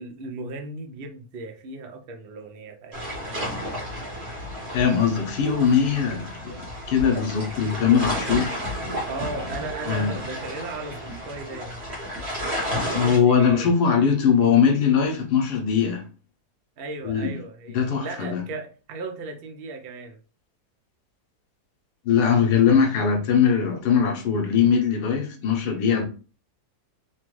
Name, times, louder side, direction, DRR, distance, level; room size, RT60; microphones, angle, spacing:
voice 1, 0.0-3.0 9.1-11.9 13.0-13.7 16.8-20.2, right 3 dB, 65° right, 0.5 m, -36 dB
sound 1, 2.9-13.2, equal, 40° right, 1.4 m, -32 dB
voice 2, 4.7-8.6 9.9-10.1 12.8-16.0 17.0-17.3 17.7-18.4 22.0-26.0, left 7 dB, 80° left, 1.2 m, -21 dB
3.1 x 2.2 x 3.0 m
omnidirectional pair, 1.7 m